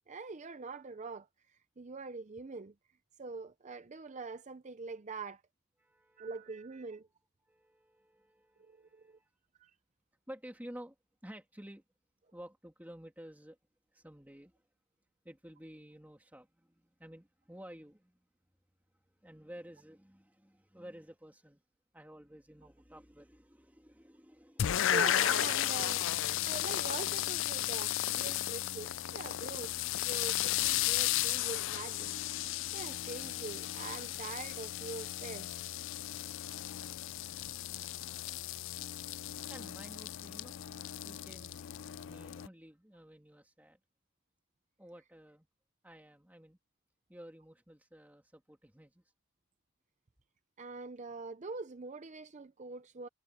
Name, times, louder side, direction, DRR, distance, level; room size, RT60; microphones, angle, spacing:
voice 1, 0.1-2.7 3.2-5.4 6.2-7.1 8.6-9.2 9.6-9.7 24.9-26.1 26.4-32.1 32.7-35.5 50.6-53.1, right 4 dB, 30° right, 0.5 m, -44 dB
voice 2, 5.8-6.3 7.4-9.3 10.3-11.0 11.2-11.8 12.3-13.6 13.9-14.6 15.2-18.2 19.2-21.6 21.9-24.9 39.5-40.6 41.0-41.6 42.0-43.8 44.8-45.5 45.8-46.6 47.1-49.0, equal, 5° right, 2.4 m, -52 dB
sound 1, 24.6-42.5, left 13 dB, 55° left, 0.4 m, -34 dB
head